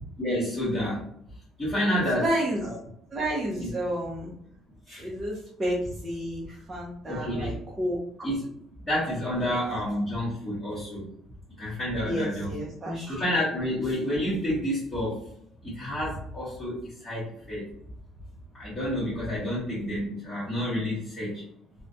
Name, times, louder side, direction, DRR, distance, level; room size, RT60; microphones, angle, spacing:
voice 1, 0.2-1.1 1.6-2.3 3.6-3.7 4.9-5.1 7.0-7.6 8.2-8.4 8.8-11.1 11.6-12.5 13.1-15.3 15.6-17.7 18.5-21.4, equal, 15° left, -11 dB, 1.0 m, -29 dB
voice 2, 2.1-2.7 3.1-4.3 5.0-8.3 9.4-9.6 12.1-13.3, right 1 dB, 20° right, -4 dB, 0.5 m, -31 dB
2.4 x 2.1 x 2.6 m, 0.67 s
cardioid pair, 165°, 0 cm